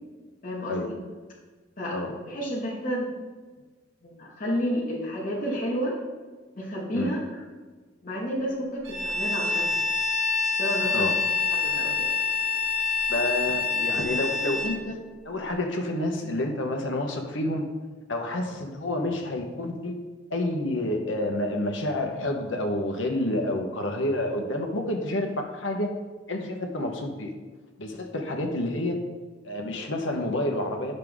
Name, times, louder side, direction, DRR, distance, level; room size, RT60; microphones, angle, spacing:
voice 1, 0.4-0.9 1.8-2.0 2.3-3.1 4.0-5.9 6.5-7.4 8.0-9.8 10.5-11.1 11.5-12.1, equal, 45° left, -6 dB, 1.7 m, -31 dB
Bowed string instrument, 8.8-14.8, left 5 dB, 85° right, 1.8 m, -26 dB
voice 2, 13.1-15.0 15.2-17.7 18.1-20.0 20.3-25.9 26.3-27.3 27.8-29.0 29.4-30.9, left 1 dB, 85° left, 3 dB, 1.3 m, -29 dB
9.7 x 6.6 x 3.7 m, 1.3 s
head